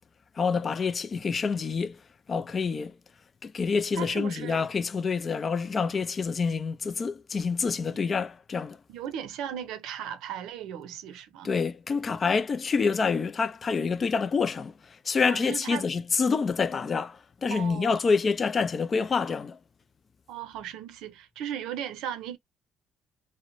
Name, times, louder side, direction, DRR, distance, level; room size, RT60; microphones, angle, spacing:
voice 1, 0.4-2.0 2.3-3.0 3.4-8.8 11.4-19.6, left 5 dB, 35° left, 0.3 m, -27 dB
voice 2, 4.0-4.6 8.9-11.5 15.3-15.8 17.5-18.0 20.3-22.4, right 9 dB, 85° right, 0.5 m, -36 dB
2.4 x 2.0 x 2.9 m
cardioid pair, 100°, 0 cm